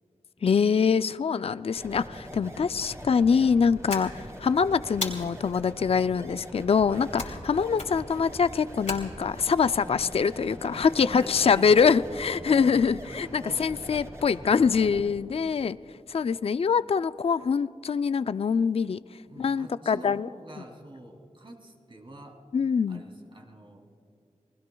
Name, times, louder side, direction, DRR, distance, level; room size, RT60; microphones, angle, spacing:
voice 1, 0.4-15.8 16.1-19.0 19.4-20.3 22.5-23.0, left 6 dB, 50° left, 14 dB, 0.4 m, -24 dB
sound 1, 1.7-15.1, equal, 25° right, 3.1 m, -42 dB
voice 2, 2.4-2.7 6.9-7.4 10.7-11.7 12.1-12.9 13.4-13.8 15.3-15.4 16.2-16.4 19.3-22.4 22.9-23.8, right 1 dB, 40° right, 2 dB, 2.7 m, -46 dB
sound 2, 3.9-4.5 5.0-5.6 7.2-7.5 7.7-8.2 8.9-9.6, left 3 dB, 70° left, 2.7 m, -36 dB
28.5 x 20.0 x 2.3 m, 2.5 s
cardioid pair, 45°, 13 cm